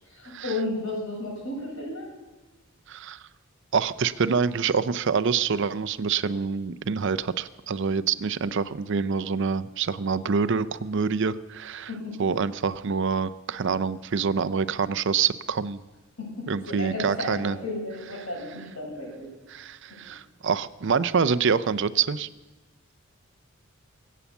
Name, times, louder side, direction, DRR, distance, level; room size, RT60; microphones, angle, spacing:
voice 1, 0.2-2.1 11.9-12.2 16.2-16.3 16.6-19.3 19.9-20.0, left 2 dB, 75° left, -1 dB, 7.0 m, -33 dB
voice 2, 2.9-3.2 3.7-11.9 12.2-15.8 16.5-17.6 19.5-22.3, right 5 dB, 60° right, 15 dB, 0.5 m, -26 dB
23.5 x 8.4 x 7.1 m, 1.2 s
head